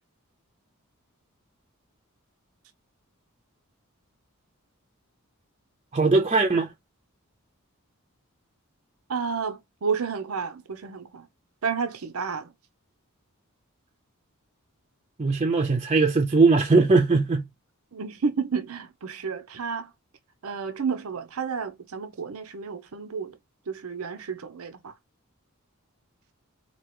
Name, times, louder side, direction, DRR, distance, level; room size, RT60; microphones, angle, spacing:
voice 1, 5.9-6.7 15.2-17.5, right 3 dB, 30° right, 0.6 m, -20 dB
voice 2, 9.1-11.3 11.6-12.5 17.9-19.9 20.4-23.4 23.7-24.9, right 5 dB, 85° right, 0.7 m, -31 dB
4.5 x 2.9 x 3.0 m
head